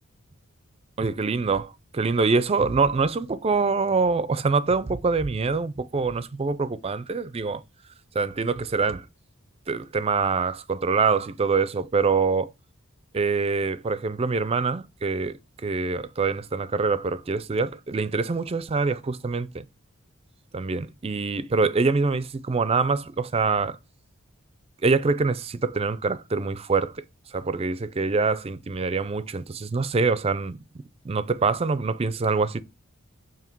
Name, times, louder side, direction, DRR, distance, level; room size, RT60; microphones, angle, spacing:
voice 1, 1.0-7.6 8.1-9.1 9.7-12.5 13.1-19.6 20.5-23.8 24.8-26.9 27.3-30.6 31.0-32.6, right 4 dB, 30° right, 0.4 m, -25 dB
7.1 x 3.1 x 4.5 m
head